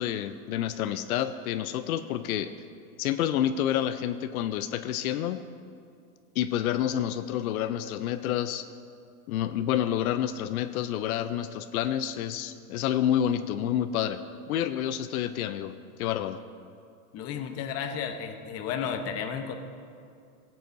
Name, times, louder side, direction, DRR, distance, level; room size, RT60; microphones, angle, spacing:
voice 1, 0.0-2.5 3.0-5.5 6.4-8.6 9.3-14.2 14.5-15.7 16.0-16.4, left 10 dB, 85° left, 11 dB, 0.6 m, -28 dB
voice 2, 17.1-19.6, left 7 dB, 35° left, 6 dB, 0.9 m, -33 dB
18.5 x 7.8 x 2.6 m, 2.4 s
supercardioid pair, 130°, 42 cm